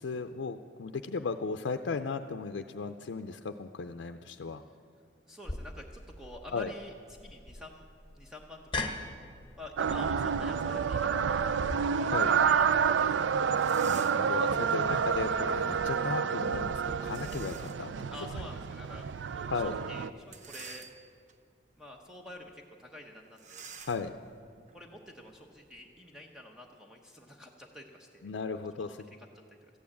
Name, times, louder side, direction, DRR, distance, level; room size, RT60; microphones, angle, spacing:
voice 1, 0.0-4.6 6.5-6.7 12.1-12.3 13.8-18.1 18.3-18.4 19.5-19.8 23.8-24.1 28.2-29.1, left 4 dB, 90° left, 7 dB, 0.5 m, -36 dB
voice 2, 5.3-6.9 7.2-7.9 8.1-9.1 9.6-13.8 14.8-14.9 18.1-20.8 21.8-23.7 24.7-28.3 28.8-28.9, left 1 dB, 5° right, 1 dB, 0.9 m, -48 dB
sound 1, 5.4-11.8, left 2 dB, 30° left, 1.1 m, -41 dB
sound 2, 9.8-20.1, right 6 dB, 75° right, 0.4 m, -29 dB
sound 3, 13.5-14.4 17.0-17.9 18.4-18.5 20.2-21.3 21.9-22.1 22.4-22.5 23.4-25.8, right 6 dB, 40° right, 0.8 m, -49 dB
13.5 x 9.4 x 8.5 m, 2.3 s
head